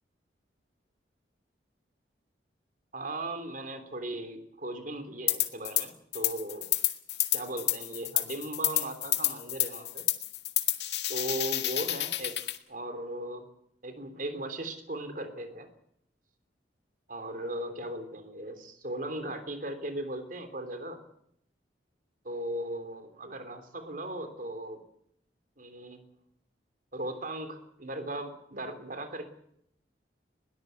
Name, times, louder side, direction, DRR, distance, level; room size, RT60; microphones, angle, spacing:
voice 1, 2.9-6.7 7.3-10.1 11.1-12.3 12.7-13.5 13.8-15.7 17.1-21.0 22.2-24.8 25.6-26.0 26.9-29.3, right 1 dB, 50° right, 9 dB, 3.2 m, -37 dB
sound 1, 5.3-5.8 6.1-12.6, left 15 dB, 65° left, 2.0 m, -29 dB
21.0 x 19.0 x 8.1 m, 0.73 s
head